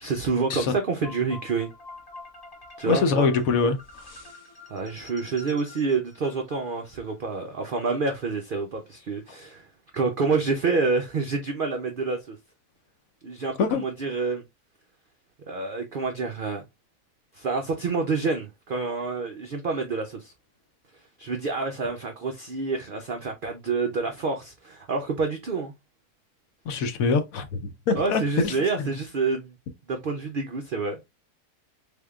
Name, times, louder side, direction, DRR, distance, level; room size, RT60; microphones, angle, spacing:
voice 1, 0.0-1.7 2.8-3.3 4.7-9.7 9.9-12.4 13.2-14.4 15.5-16.6 17.3-20.3 21.2-25.7 27.9-29.5 29.9-31.0, right 4 dB, 80° right, 0.4 m, -28 dB
sound 1, 1.0-7.1, left 3 dB, 20° left, 0.7 m, -46 dB
voice 2, 2.9-3.8 13.6-13.8 26.7-27.5 27.9-28.5, left 4 dB, 70° left, 1.0 m, -23 dB
3.6 x 3.5 x 2.3 m
omnidirectional pair, 1.7 m